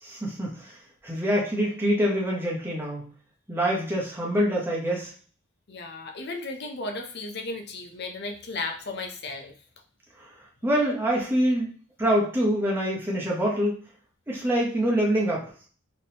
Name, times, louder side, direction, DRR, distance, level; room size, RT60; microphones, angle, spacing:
voice 1, 0.0-3.1 3.5-5.1 10.2-10.3 10.6-11.7 12.0-13.7 14.3-15.5, equal, 10° right, -3 dB, 0.9 m, -25 dB
voice 2, 5.7-9.5, left 3 dB, 50° left, 4 dB, 0.6 m, -35 dB
3.6 x 3.0 x 2.8 m, 0.43 s
head